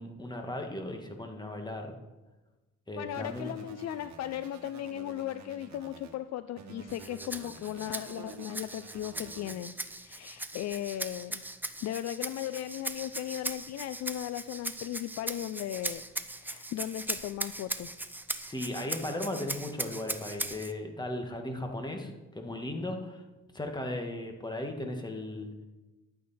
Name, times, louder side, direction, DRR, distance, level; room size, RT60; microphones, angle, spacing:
voice 1, 0.0-2.0 2.9-3.5 18.5-23.2 23.5-25.5, left 1 dB, 15° left, 3 dB, 1.6 m, -36 dB
voice 2, 3.0-9.7 10.0-11.4 11.8-16.0 16.4-17.9, left 12 dB, 60° left, 13 dB, 0.4 m, -37 dB
sound 1, 3.1-6.1 6.6-9.6, right 6 dB, 70° right, 1.3 m, -49 dB
Rattle (instrument), 6.9-20.7, right 1 dB, 5° right, 0.6 m, -39 dB
11.5 x 8.6 x 4.2 m, 1.1 s
cardioid pair, 90°, 30 cm